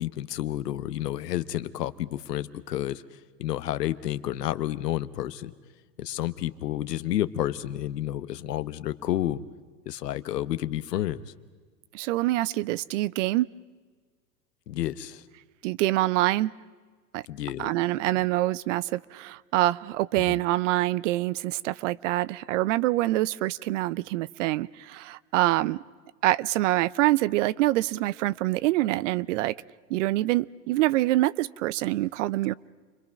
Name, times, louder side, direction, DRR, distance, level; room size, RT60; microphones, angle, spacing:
voice 1, 0.0-3.0 3.4-5.5 6.0-9.4 9.9-11.2 14.7-15.2 17.3-17.7 20.2-20.3, left 13 dB, 75° left, 14 dB, 1.2 m, -30 dB
voice 2, 11.9-13.5 15.6-16.5 17.1-17.2 17.6-25.8 26.2-29.6 29.9-32.5, right 17 dB, 50° right, 21 dB, 0.6 m, -25 dB
29.5 x 22.5 x 5.9 m, 1.5 s
hypercardioid pair, 110°, 49 cm